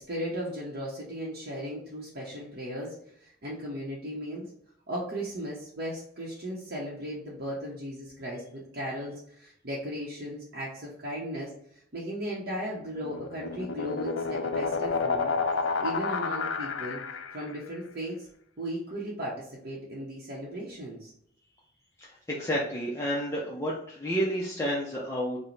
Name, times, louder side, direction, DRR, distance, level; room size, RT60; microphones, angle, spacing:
voice 1, 0.0-4.5 4.9-11.5 11.9-15.3 15.8-17.0 17.3-18.3 18.6-21.1, equal, 50° right, -5 dB, 0.8 m, -36 dB
sound 1, 12.8-17.6, left 4 dB, 85° left, 0.4 m, -30 dB
voice 2, 22.0-25.4, equal, 15° left, -5 dB, 0.5 m, -30 dB
4.9 x 2.1 x 3.2 m, 0.67 s
head